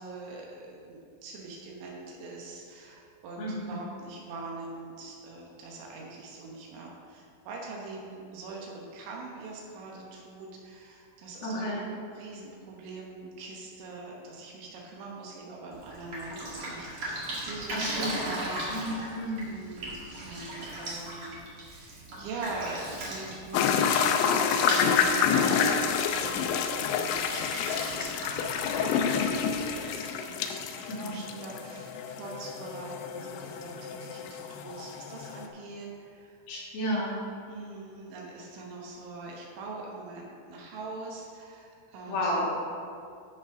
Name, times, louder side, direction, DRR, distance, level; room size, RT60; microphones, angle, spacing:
voice 1, 0.0-11.8 12.2-19.2 19.4-28.0 28.3-36.4 37.5-42.3, right 3 dB, 75° right, -2 dB, 3.2 m, -43 dB
voice 2, 3.4-3.7 11.4-11.9 17.7-18.2 18.7-19.5 30.9-31.2 36.5-37.2 42.1-42.5, equal, 70° left, -6 dB, 4.6 m, -32 dB
Drip, 15.7-29.8, right 1 dB, 55° right, 1.5 m, -39 dB
sound 1, 23.5-35.5, left 7 dB, 90° left, 2.6 m, -28 dB
13.5 x 5.2 x 5.0 m, 2.4 s
omnidirectional pair, 6.0 m